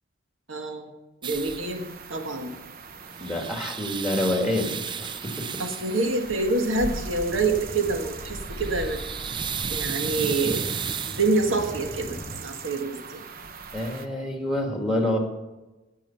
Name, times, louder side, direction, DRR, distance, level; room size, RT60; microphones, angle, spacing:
voice 1, 0.5-0.9 1.2-2.6 5.6-9.0 9.7-10.7 11.1-13.2, right 3 dB, 85° right, 4 dB, 1.6 m, -27 dB
sound 1, 1.2-1.6 2.9-6.2 8.4-11.3, right 7 dB, 25° right, 0.3 m, -33 dB
sound 2, 1.3-14.1, right 4 dB, 50° right, 0.8 m, -40 dB
voice 2, 3.2-5.6 13.7-15.2, left 1 dB, 5° right, 2 dB, 1.7 m, -27 dB
sound 3, 7.3-12.4, left 1 dB, 20° left, 1.4 m, -42 dB
17.0 x 6.4 x 5.6 m, 1.1 s
head